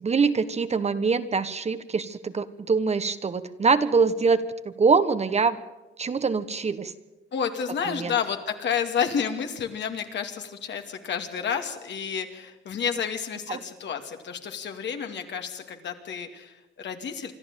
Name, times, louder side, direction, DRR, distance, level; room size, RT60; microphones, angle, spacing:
voice 1, 0.0-5.6 6.0-6.9 8.0-8.1 13.5-13.6, right 4 dB, 35° right, 12 dB, 1.2 m, -24 dB
voice 2, 7.3-17.3, left 7 dB, 65° left, 5 dB, 2.5 m, -30 dB
26.0 x 12.5 x 9.1 m, 1.1 s
cardioid pair, 90°, 20 cm